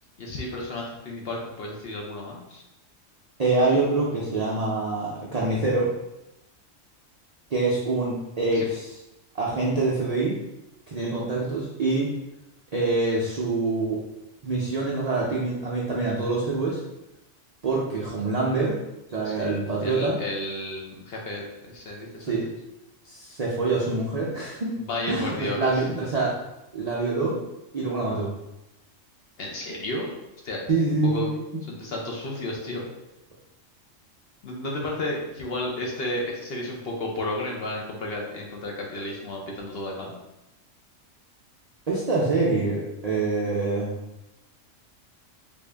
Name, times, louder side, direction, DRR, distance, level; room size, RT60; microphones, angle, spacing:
voice 1, 0.2-2.6 8.5-8.6 11.1-11.5 19.2-22.4 24.7-25.8 29.4-30.1 30.4-31.3 31.7-32.9 34.4-40.2, left 1 dB, 55° left, -1 dB, 0.8 m, -33 dB
voice 2, 3.4-5.9 7.5-8.9 9.3-10.4 10.9-12.1 12.7-14.0 14.4-16.8 17.6-18.8 19.1-20.2 22.2-22.5 23.0-24.7 25.1-26.4 26.7-27.4 27.7-28.3 30.7-31.3 41.9-43.9, right 3 dB, 55° right, -5 dB, 0.4 m, -25 dB
3.5 x 2.5 x 3.3 m, 0.93 s
omnidirectional pair, 1.4 m